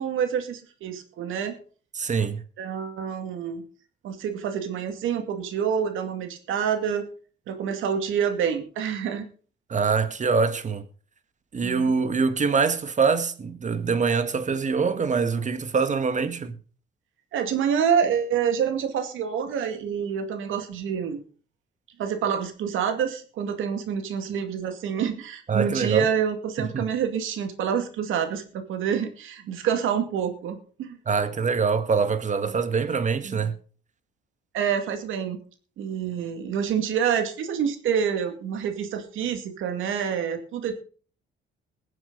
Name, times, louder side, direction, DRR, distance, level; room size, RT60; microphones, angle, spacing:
voice 1, 0.0-1.6 2.6-3.6 4.0-7.0 7.5-9.3 11.6-11.9 17.3-21.2 22.0-31.0 33.2-33.5 34.5-35.4 35.8-40.7, right 7 dB, 85° right, 2.3 m, -27 dB
voice 2, 2.0-2.4 9.7-10.9 11.5-16.6 25.5-26.1 26.6-26.9 31.1-33.5, right 5 dB, 40° right, 1.7 m, -24 dB
21.0 x 7.7 x 4.0 m
cardioid pair, 90°, 20 cm